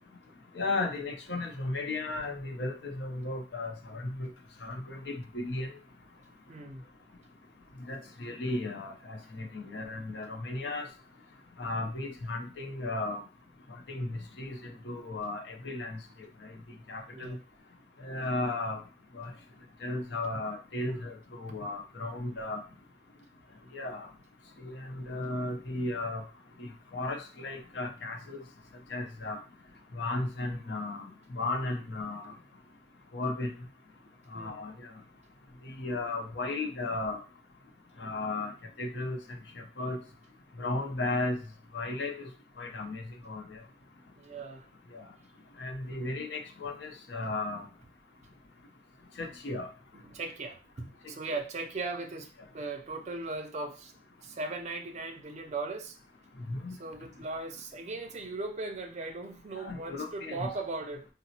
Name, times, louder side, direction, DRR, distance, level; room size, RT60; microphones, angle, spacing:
voice 1, 0.5-4.3 4.6-5.7 7.9-10.9 11.6-13.2 13.9-16.0 16.9-17.4 18.0-18.8 19.1-19.3 19.8-22.6 23.7-24.1 24.6-26.2 26.6-28.4 28.9-29.4 29.9-32.3 33.1-33.5 34.3-34.9 35.6-37.2 38.0-38.5 38.8-39.2 39.5-40.0 40.6-41.4 41.7-42.3 42.6-43.6 44.9-45.1 45.6-47.7 49.2-49.7 56.5-56.8 59.5-60.5, left 2 dB, 75° left, 4 dB, 0.6 m, -35 dB
voice 2, 6.5-6.8 17.1-17.4 34.3-34.6 44.2-44.7 49.9-52.3 52.5-53.9 54.2-56.0 56.8-61.1, right 3 dB, 40° right, 5 dB, 0.5 m, -38 dB
3.9 x 2.0 x 2.8 m, 0.35 s
head